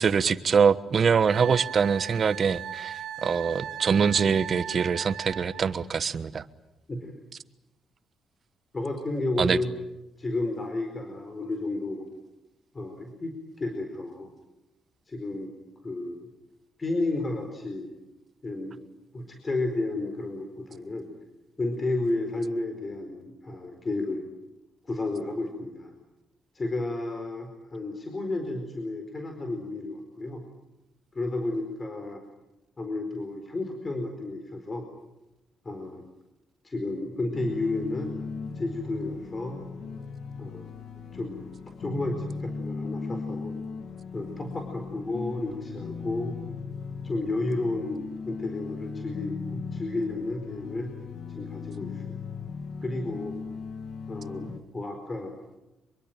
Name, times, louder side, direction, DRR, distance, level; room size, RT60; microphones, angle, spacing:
voice 1, 0.0-6.4 9.4-9.6, right 6 dB, 45° right, 13 dB, 1.3 m, -24 dB
Wind instrument woodwind instrument, 1.3-5.7, right 10 dB, 75° right, 2.9 m, -37 dB
voice 2, 6.9-7.2 8.7-9.7 10.2-12.1 12.7-14.3 15.1-15.5 15.8-16.3 16.8-17.9 18.4-18.8 19.1-21.1 21.6-24.2 24.9-25.9 26.5-30.4 31.1-32.2 32.8-34.9 35.6-36.0 36.6-38.1 38.6-39.6 40.4-40.7 41.1-41.5 41.8-43.5 44.1-46.3 47.0-50.9 51.3-52.2 52.8-53.4 54.1-55.3, left 2 dB, 30° left, 5 dB, 4.5 m, -32 dB
sound 1, 37.3-54.6, left 5 dB, 65° left, 2.9 m, -38 dB
25.5 x 23.0 x 9.1 m, 0.94 s
cardioid pair, 90°, 0 cm